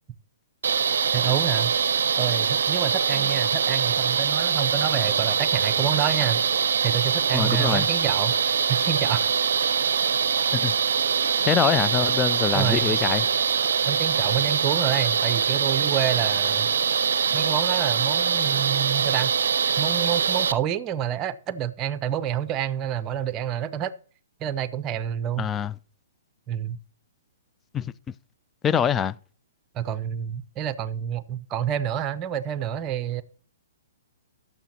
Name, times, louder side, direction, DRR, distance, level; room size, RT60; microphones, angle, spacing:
sound 1, 0.6-20.5, right 7 dB, 70° right, 0.5 m, -23 dB
voice 1, 1.1-1.8 2.2-6.4 6.8-8.4 8.7-9.3 12.5-13.0 13.9-16.7 17.3-19.3 19.8-23.9 24.4-25.5 26.5-26.8 29.7-33.2, right 10 dB, 25° right, 0.6 m, -28 dB
voice 2, 7.3-7.9 10.5-10.7 11.4-13.3 25.4-25.7 27.7-27.9 28.6-29.1, left 8 dB, 15° left, 0.3 m, -24 dB
16.0 x 7.0 x 2.8 m
hypercardioid pair, 125°, 0 cm